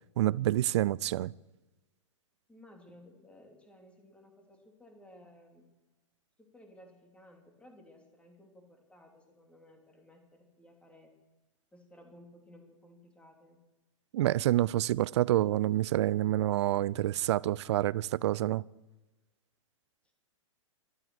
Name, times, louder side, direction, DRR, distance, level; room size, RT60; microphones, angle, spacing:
voice 1, 0.2-1.3 14.1-18.6, right 14 dB, 60° right, 0.5 m, -28 dB
voice 2, 2.5-5.7 6.4-11.1 11.7-13.6, left 1 dB, 5° left, 2.9 m, -57 dB
13.0 x 12.5 x 7.6 m
hypercardioid pair, 125°, 17 cm